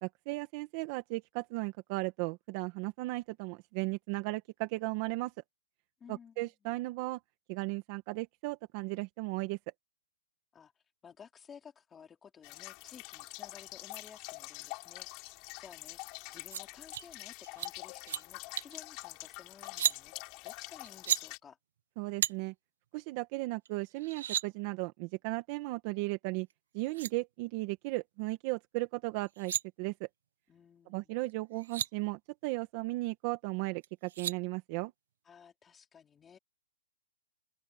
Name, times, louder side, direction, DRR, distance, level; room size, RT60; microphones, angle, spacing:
voice 1, 0.0-5.3 6.1-7.2 7.5-9.6 22.0-22.5 22.9-26.5 26.7-29.5 29.8-30.1 30.9-34.9, right 22 dB, 30° right, 1.7 m, -36 dB
voice 2, 6.0-6.5 10.5-16.0 16.3-20.1 20.4-21.6 30.5-31.2 35.2-36.4, left 7 dB, 10° left, 4.3 m, -55 dB
sound 1, 12.4-21.4, left 27 dB, 30° left, 4.4 m, -46 dB
sound 2, 16.5-16.6 16.9-17.1 17.4-17.7 18.0-18.2 18.6-18.8 19.6-20.0 20.9-21.2 22.2-22.3 23.7-23.8 24.0-24.5 26.5-26.6 26.9-27.1 29.2-29.6 31.3-31.4 31.6-31.9 33.8-34.4, right 10 dB, 60° right, 0.8 m, -33 dB
open air
hypercardioid pair, 160°, 0 cm